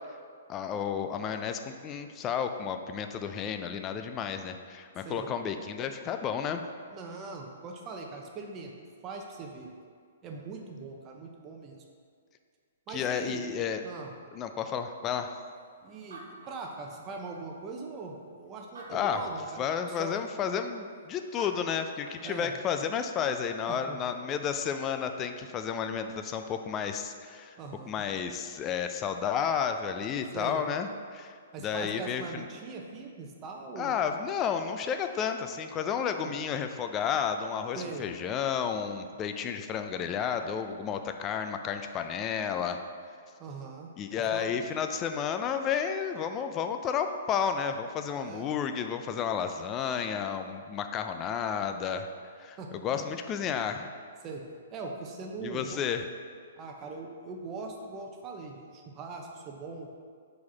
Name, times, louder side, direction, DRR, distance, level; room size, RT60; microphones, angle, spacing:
voice 1, 0.5-6.6 12.9-13.8 14.3-15.3 18.9-19.2 19.6-27.6 27.9-32.5 33.8-42.8 44.0-52.1 52.4-53.9 55.4-56.0, left 7 dB, 25° left, 7 dB, 0.4 m, -32 dB
voice 2, 5.0-5.3 6.9-8.7 9.0-9.7 10.2-11.8 12.9-13.5 13.8-14.1 15.8-20.1 22.2-22.5 23.7-24.0 27.6-28.0 30.3-30.6 31.5-33.9 37.7-38.1 43.4-43.9 44.2-44.5 48.2-48.5 52.6-53.1 54.2-54.5 54.7-55.8 56.6-59.9, right 4 dB, 30° right, 1 dB, 0.8 m, -41 dB
Animal, 15.7-15.8 15.9-17.4 18.0-18.1 18.6-19.6 21.1-21.2 21.4-22.3, right 2 dB, 70° right, 1.1 m, -49 dB
4.7 x 4.3 x 4.8 m, 2.1 s
hypercardioid pair, 125°, 0 cm